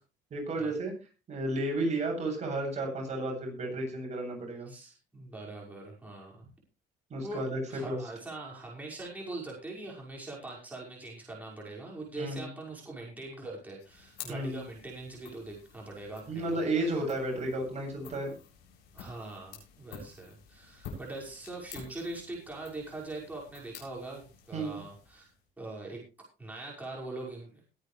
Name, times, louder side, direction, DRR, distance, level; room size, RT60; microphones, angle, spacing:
voice 1, 0.3-0.9 1.3-4.7 7.1-8.0 12.2-12.5 14.3-14.6 16.3-18.3 24.5-24.8, right 2 dB, 40° right, 1 dB, 7.9 m, -32 dB
voice 2, 4.7-6.5 7.2-17.0 18.9-25.3 25.6-26.0 26.4-27.5, right 2 dB, 10° right, -4 dB, 5.8 m, -42 dB
sound 1, 13.8-25.5, left 6 dB, 90° left, 7.8 m, -51 dB
21.5 x 9.8 x 3.4 m, 0.32 s
cardioid pair, 110°, 17 cm